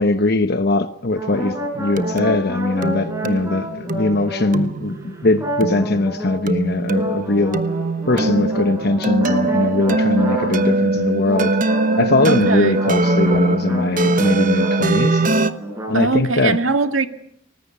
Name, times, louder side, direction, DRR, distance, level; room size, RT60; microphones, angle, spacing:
voice 1, 0.0-7.6 8.1-11.6 12.0-15.2 15.9-16.6, left 2 dB, 50° left, 1.0 m, -20 dB
sound 1, 1.2-4.9 5.4-6.5 6.9-10.9 11.2-14.8 15.1-16.1, equal, 15° right, 6.2 m, -29 dB
sound 2, 1.3-15.5, right 2 dB, 40° right, 1.1 m, -22 dB
voice 2, 12.3-12.8 15.9-17.1, right 3 dB, 85° right, 1.9 m, -21 dB
24.5 x 20.5 x 8.3 m
head